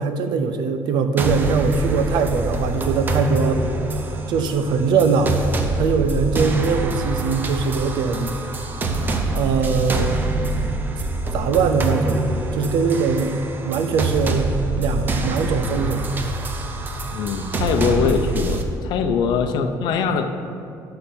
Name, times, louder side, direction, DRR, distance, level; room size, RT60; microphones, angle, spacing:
voice 1, 0.0-3.6 4.3-5.4 5.8-8.3 9.3-10.2 11.3-13.4 13.6-16.1 19.6-19.7, right 5 dB, 80° right, 8 dB, 0.7 m, -21 dB
sound 1, 1.2-18.6, right 2 dB, 25° right, 0.6 m, -25 dB
voice 2, 17.1-20.3, left 6 dB, 75° left, 8 dB, 0.7 m, -22 dB
11.5 x 3.9 x 7.1 m, 2.5 s
cardioid pair, 170°, 8 cm